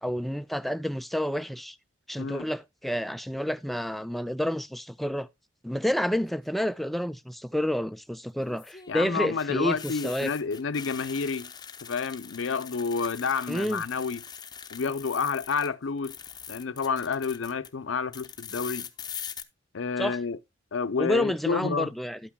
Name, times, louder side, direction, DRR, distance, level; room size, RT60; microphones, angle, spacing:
voice 1, 0.0-1.8 2.1-5.3 5.6-10.3 13.5-13.8 20.0-20.2 21.0-22.2, equal, ahead, 0.4 m, -29 dB
sound 1, 6.1-6.5 8.4-15.7 16.0-17.7 18.1-19.4, left 7 dB, 20° left, 0.7 m, -43 dB
voice 2, 8.9-11.5 11.8-14.2 14.7-16.1 16.5-18.9 19.7-20.4 20.7-21.9, left 5 dB, 75° left, 0.6 m, -29 dB
12.0 x 8.6 x 2.2 m
head